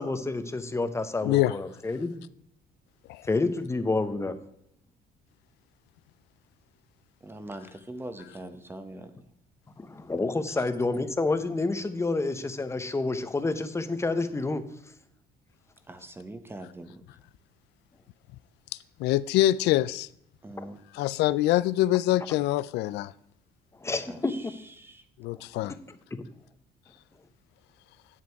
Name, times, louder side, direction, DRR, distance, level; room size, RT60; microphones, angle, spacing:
voice 1, 0.0-2.2 3.3-4.4 9.8-14.6 23.8-24.5, left 3 dB, 15° left, 1.0 m, -29 dB
voice 2, 1.2-1.6 3.1-3.2 19.0-20.1 20.9-23.1 25.2-25.7, left 15 dB, 80° left, 0.4 m, -24 dB
voice 3, 7.2-9.2 15.9-17.0 20.4-20.8 24.1-25.0, right 1 dB, 15° right, 1.1 m, -42 dB
9.7 x 7.6 x 4.6 m
cardioid pair, 110°, 17 cm